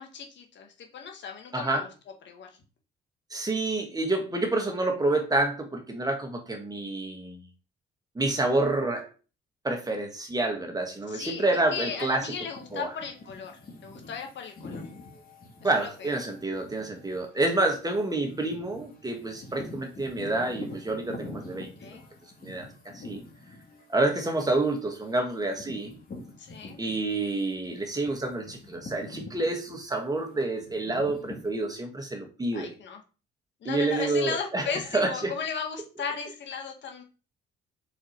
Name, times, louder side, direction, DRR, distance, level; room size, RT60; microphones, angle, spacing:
voice 1, 0.0-1.9 2.2-2.6 11.1-13.5 13.8-14.8 15.8-16.2 21.8-22.0 26.4-26.8 32.5-33.0 33.6-37.0, left 6 dB, 65° left, 4 dB, 1.6 m, -36 dB
voice 2, 1.5-1.9 3.3-7.4 8.2-9.1 9.6-12.3 12.7-12.9 15.6-21.7 22.4-22.7 22.9-23.2 23.9-25.9 26.8-32.7 33.7-35.3, right 2 dB, 20° right, 3 dB, 1.7 m, -28 dB
sound 1, 12.2-27.3 27.7-31.5, left 2 dB, 50° left, 2.3 m, -45 dB
4.9 x 4.3 x 4.4 m, 0.34 s
cardioid pair, 90°, 20 cm